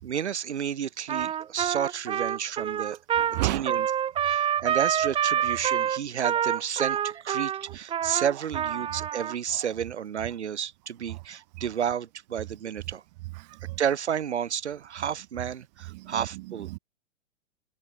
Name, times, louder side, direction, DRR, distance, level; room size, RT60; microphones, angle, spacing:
voice 1, 0.0-3.0 3.4-3.9 4.2-13.0 13.8-16.7, right 8 dB, 60° right, 4.7 m, -31 dB
Trumpet, 1.1-9.3, right 9 dB, 15° right, 1.5 m, -27 dB
voice 2, 3.2-3.7 7.7-7.8 9.5-9.7 11.1-11.2 11.5-11.7 13.3-13.8 15.9-16.8, right 22 dB, 35° right, 1.3 m, -34 dB
figure-of-eight pair, 120°, 37 cm